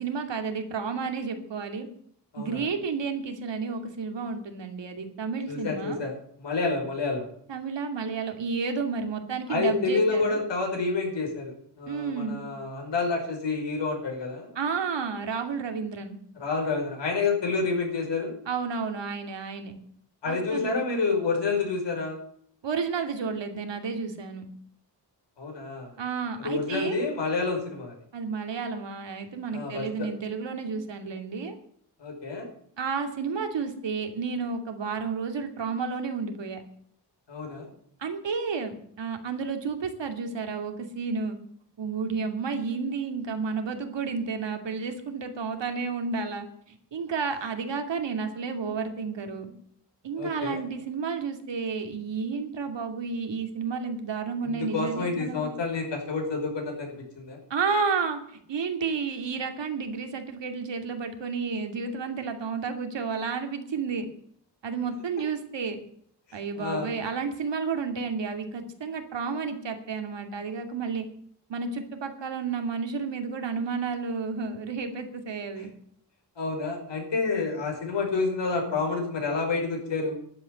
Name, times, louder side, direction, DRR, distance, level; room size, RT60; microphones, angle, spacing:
voice 1, 0.0-1.9 2.4-6.0 7.5-10.4 11.9-12.4 14.5-16.2 18.5-19.7 20.2-20.8 22.6-24.4 26.0-27.0 28.1-31.6 32.8-36.6 38.0-41.4 41.8-49.5 50.0-55.5 57.5-64.1 64.6-65.8 66.3-71.1 71.5-75.7, right 5 dB, 85° right, 6 dB, 2.7 m, -31 dB
voice 2, 2.3-2.7 5.5-6.1 6.4-7.2 9.5-14.5 16.4-18.3 20.2-22.2 25.4-25.9 26.4-28.0 29.5-30.1 32.0-32.5 37.3-37.7 50.2-50.6 54.4-57.4 66.3-66.9 76.4-80.2, left 4 dB, 80° left, 1 dB, 5.3 m, -29 dB
12.0 x 8.4 x 9.5 m, 0.66 s
wide cardioid pair, 125°, 43 cm